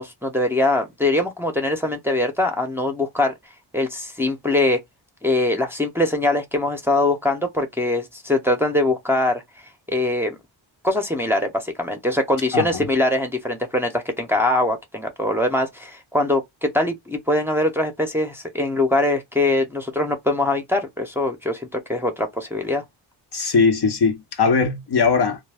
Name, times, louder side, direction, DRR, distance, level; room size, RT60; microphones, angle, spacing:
voice 1, 0.0-3.3 3.7-4.8 5.2-9.4 9.9-10.4 10.8-22.8, left 1 dB, 5° right, 0.7 m, -22 dB
voice 2, 12.5-12.9 23.3-25.4, left 5 dB, 50° left, 0.9 m, -20 dB
2.4 x 2.2 x 3.4 m
cardioid pair, 70°, 49 cm